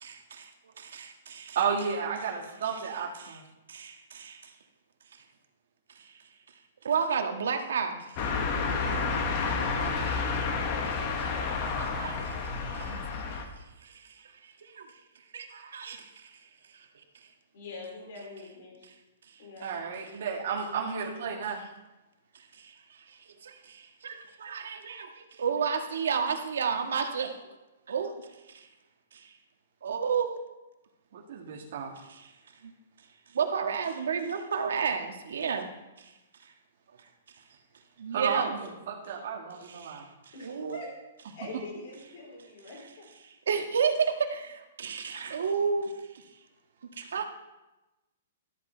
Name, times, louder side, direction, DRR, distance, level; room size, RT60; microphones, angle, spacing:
voice 1, 0.0-0.5 0.8-1.6 3.2-3.4 3.7-4.5 5.9-6.2 6.8-8.4 8.9-10.2 10.9-13.4 13.8-14.9 15.3-16.4 16.7-16.9 22.3-27.4 27.9-28.7 29.1-29.4 29.8-30.3 32.1-32.3 32.6-32.7 33.3-35.7 36.0-36.1 36.4-36.5 38.0-38.6 39.6-40.1 40.4-40.8 43.5-46.2 47.0-47.2, right 6 dB, 85° right, 5 dB, 1.5 m, -33 dB
voice 2, 1.6-3.4 12.8-13.0 19.6-21.6 31.1-31.9 38.1-40.1, right 6 dB, 50° right, -2 dB, 1.7 m, -32 dB
sound 1, 8.2-13.4, left 4 dB, 30° left, 1.1 m, -30 dB
voice 3, 17.5-18.9 19.4-19.8 40.3-40.9 41.3-43.1, left 3 dB, 45° left, -1 dB, 4.2 m, -44 dB
13.0 x 7.7 x 4.5 m, 1.0 s
hypercardioid pair, 175°, 0 cm